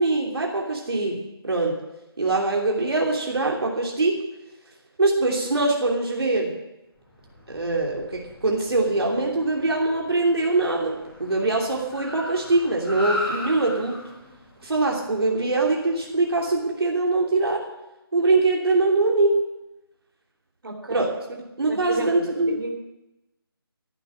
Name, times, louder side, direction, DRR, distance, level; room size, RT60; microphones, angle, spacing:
voice 1, 0.0-1.8 2.2-4.3 5.0-6.6 7.5-14.0 14.6-17.7 18.1-19.4 20.9-21.1 21.6-22.7, right 2 dB, 80° right, -1 dB, 3.1 m, -23 dB
Car, 7.1-16.6, left 1 dB, 5° left, 4.9 m, -38 dB
voice 2, 20.6-21.0 21.7-22.7, right 2 dB, 60° right, 2 dB, 3.2 m, -32 dB
14.5 x 8.4 x 7.6 m, 0.95 s
figure-of-eight pair, 165°, 13 cm